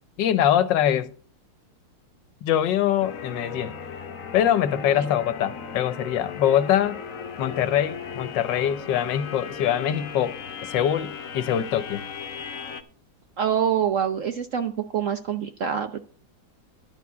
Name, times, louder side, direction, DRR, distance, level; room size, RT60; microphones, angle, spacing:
voice 1, 0.2-1.1 2.4-3.7 4.3-7.0 7.4-12.0, left 10 dB, 75° left, 1.4 m, -23 dB
sound 1, 3.0-12.8, left 6 dB, 55° left, 1.2 m, -37 dB
voice 2, 13.4-16.0, right 8 dB, 60° right, 0.8 m, -25 dB
11.5 x 4.6 x 8.3 m
omnidirectional pair, 2.0 m